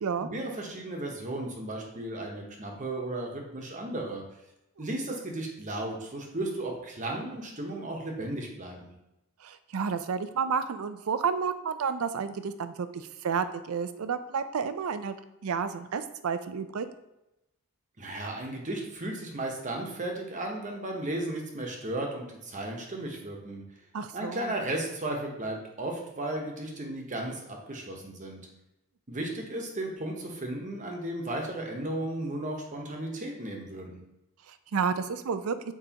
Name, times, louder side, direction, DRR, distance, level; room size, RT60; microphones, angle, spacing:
voice 1, 0.2-4.2 4.8-8.9 18.0-23.6 24.1-28.4 29.1-34.0, right 1 dB, 35° right, 1 dB, 1.0 m, -35 dB
voice 2, 9.4-15.1 15.4-16.9 23.9-24.5 34.5-35.6, right 6 dB, 75° right, 12 dB, 0.4 m, -31 dB
7.0 x 4.8 x 2.9 m, 0.90 s
head